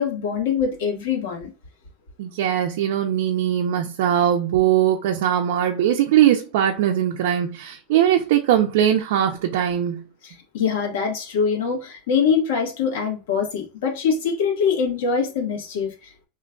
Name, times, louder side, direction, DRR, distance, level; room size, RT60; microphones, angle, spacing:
voice 1, 0.0-1.5 10.2-16.3, left 6 dB, 80° left, 1.3 m, -23 dB
voice 2, 2.2-10.0, right 10 dB, 70° right, 0.5 m, -20 dB
3.0 x 2.3 x 3.7 m
supercardioid pair, 170°, 0 cm